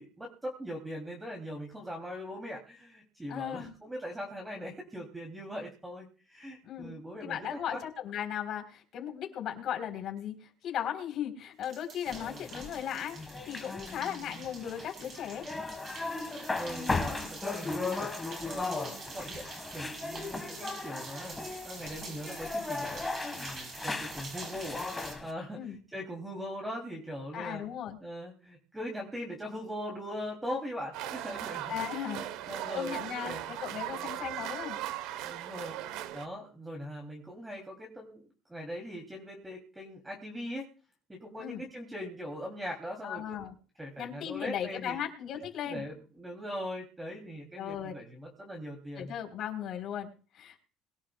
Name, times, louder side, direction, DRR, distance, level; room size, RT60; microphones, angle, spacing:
voice 1, 0.0-7.8 13.9-14.5 16.6-18.1 18.4-21.4 21.6-24.8 25.2-27.6 28.0-31.8 32.2-33.4 33.9-34.1 35.2-35.8 36.1-38.2 38.5-40.7 41.1-43.4 43.8-45.0 45.6-49.1, equal, 10° right, 1 dB, 3.2 m, -41 dB
voice 2, 3.3-3.7 6.6-6.9 7.2-13.2 13.5-15.4 25.5-25.8 27.3-28.0 31.7-34.8 41.4-41.6 43.0-43.5 44.0-45.8 47.6-47.9 49.0-50.6, left 9 dB, 50° left, 4 dB, 4.0 m, -37 dB
sound 1, 11.6-25.1, right 3 dB, 35° right, 6.8 m, -46 dB
sound 2, 12.1-25.3, left 3 dB, 15° left, 1.8 m, -37 dB
sound 3, 30.9-36.3, right 12 dB, 80° right, 1.1 m, -38 dB
22.5 x 11.5 x 2.4 m, 0.39 s
cardioid pair, 135°, 0 cm